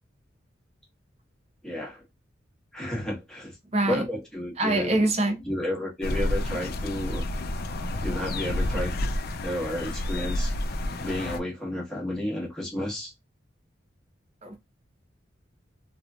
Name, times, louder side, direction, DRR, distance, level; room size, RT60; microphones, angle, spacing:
voice 1, 1.6-2.0 2.7-3.6 3.9-5.1 5.4-7.3 8.0-8.9 9.4-10.5 11.0-13.1, left 1 dB, 5° left, 1.2 m, -31 dB
voice 2, 3.7-4.0 4.6-5.4 14.4-14.6, right 2 dB, 35° right, 0.8 m, -24 dB
sound 1, 6.0-11.4, left 1 dB, 55° left, 0.4 m, -29 dB
2.9 x 2.5 x 2.3 m
head